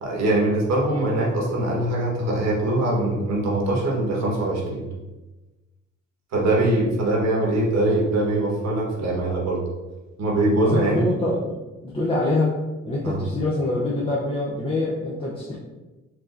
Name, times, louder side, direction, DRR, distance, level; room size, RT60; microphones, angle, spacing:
voice 1, 0.0-4.9 6.3-9.6 10.2-11.1 13.0-13.2, right 1 dB, 60° right, -3 dB, 1.4 m, -22 dB
voice 2, 10.7-12.6 12.8-15.6, left 2 dB, 20° left, -6 dB, 0.7 m, -25 dB
4.6 x 2.9 x 2.6 m, 1.1 s
cardioid pair, 90°, 30 cm